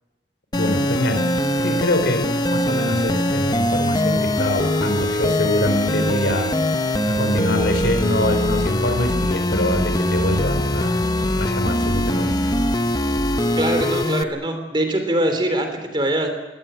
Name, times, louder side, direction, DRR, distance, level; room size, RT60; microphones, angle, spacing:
voice 1, 0.5-6.6 7.1-11.0 11.4-12.5, left 1 dB, 70° left, 8 dB, 4.3 m, -24 dB
sound 1, 0.5-14.2, left 1 dB, 20° left, 1.0 m, -22 dB
voice 2, 13.6-16.3, right 1 dB, 25° right, 6 dB, 3.3 m, -22 dB
23.5 x 17.0 x 8.9 m, 1.2 s
head